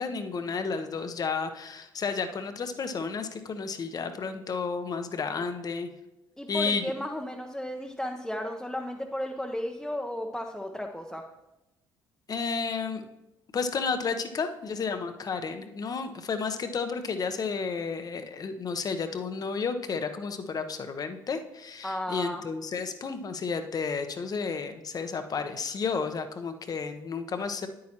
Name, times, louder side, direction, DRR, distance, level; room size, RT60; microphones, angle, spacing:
voice 1, 0.0-5.9 6.5-6.8 12.3-13.0 13.5-27.7, left 5 dB, 40° left, 8 dB, 0.8 m, -32 dB
voice 2, 6.4-11.3 21.8-22.4, left 1 dB, 5° left, 1 dB, 0.8 m, -34 dB
9.4 x 8.6 x 2.9 m, 0.96 s
hypercardioid pair, 55°, 9 cm